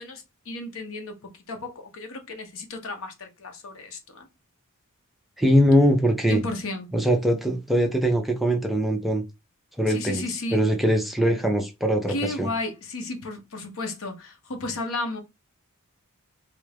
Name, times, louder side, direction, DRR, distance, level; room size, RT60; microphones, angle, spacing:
voice 1, 0.0-4.3 6.3-6.9 9.9-10.6 12.1-15.2, left 2 dB, 65° left, 0.8 m, -33 dB
voice 2, 5.4-6.4 6.9-9.2 9.8-10.2 10.5-12.5, equal, ahead, 0.4 m, -22 dB
3.1 x 2.4 x 3.3 m
head